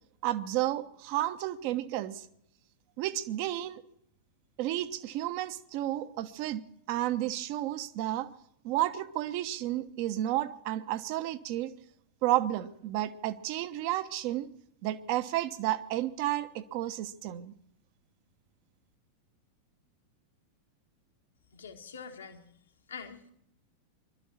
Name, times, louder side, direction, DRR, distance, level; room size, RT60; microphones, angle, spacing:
voice 1, 0.2-2.2 3.0-3.8 4.6-8.3 8.6-11.7 12.2-14.5 14.8-17.5, right 14 dB, 45° right, 11 dB, 1.0 m, -32 dB
voice 2, 21.5-22.5 22.9-23.3, left 6 dB, 70° left, 5 dB, 1.9 m, -44 dB
22.5 x 13.0 x 4.3 m, 0.73 s
figure-of-eight pair, 90°, 0 cm